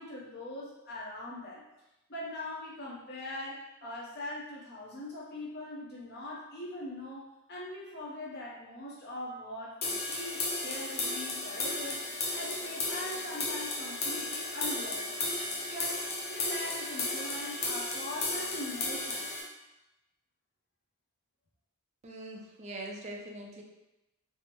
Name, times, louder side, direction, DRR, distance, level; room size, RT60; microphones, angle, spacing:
voice 1, 0.0-1.6 2.1-7.2 7.5-12.0 12.3-15.3 15.7-16.0 16.3-19.3, left 1 dB, 50° left, -5 dB, 0.8 m, -41 dB
sound 1, 9.8-19.4, left 2 dB, 30° left, 0.4 m, -34 dB
voice 2, 22.0-23.6, right 1 dB, 30° right, -1 dB, 0.4 m, -42 dB
3.3 x 2.0 x 3.0 m, 0.97 s
head